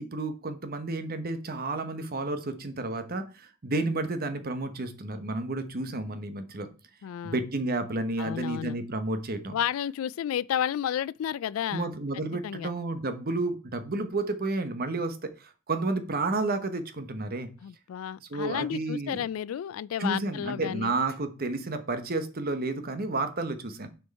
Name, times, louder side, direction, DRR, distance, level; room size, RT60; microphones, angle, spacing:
voice 1, 0.0-6.7 7.2-9.6 11.7-17.5 18.2-19.2 20.0-23.9, right 2 dB, 45° right, 1.0 m, -31 dB
voice 2, 7.0-7.4 8.2-8.8 9.5-11.9 12.4-12.7 17.6-20.9, left 9 dB, 75° left, 0.3 m, -32 dB
9.6 x 4.6 x 4.1 m
head